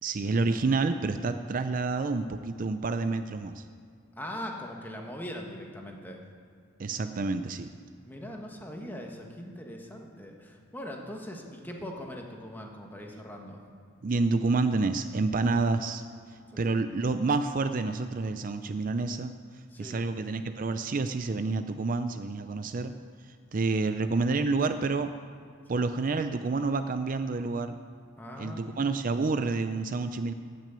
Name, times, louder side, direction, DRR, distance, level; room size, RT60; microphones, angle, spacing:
voice 1, 0.0-3.6 6.8-7.7 14.0-16.0 16.6-19.3 19.8-22.9 23.5-25.1 25.7-27.8 28.4-30.3, right 3 dB, 45° right, 9 dB, 0.4 m, -28 dB
voice 2, 4.2-6.2 8.0-13.6 16.5-16.6 19.7-20.0 25.7-25.8 28.2-28.8, equal, 10° left, 1 dB, 1.4 m, -41 dB
15.0 x 6.2 x 9.1 m, 2.2 s
head